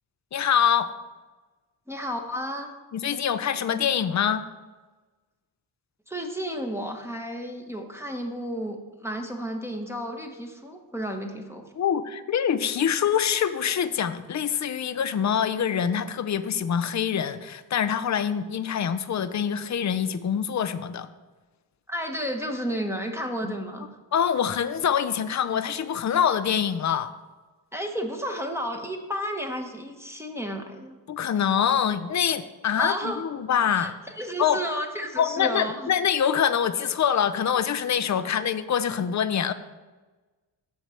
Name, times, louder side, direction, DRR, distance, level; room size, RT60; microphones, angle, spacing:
voice 1, 0.3-0.9 2.9-4.4 11.8-21.1 23.4-23.5 24.1-27.1 31.1-33.9 34.4-34.6 35.2-39.5, left 8 dB, 40° left, 13 dB, 0.6 m, -25 dB
voice 2, 1.9-2.7 6.1-8.8 9.0-11.6 21.9-23.9 27.7-31.0 32.7-33.2 33.8-35.9 38.2-38.3, equal, 5° right, 1 dB, 1.1 m, -32 dB
7.3 x 4.7 x 7.0 m, 1.2 s
cardioid pair, 75°, 43 cm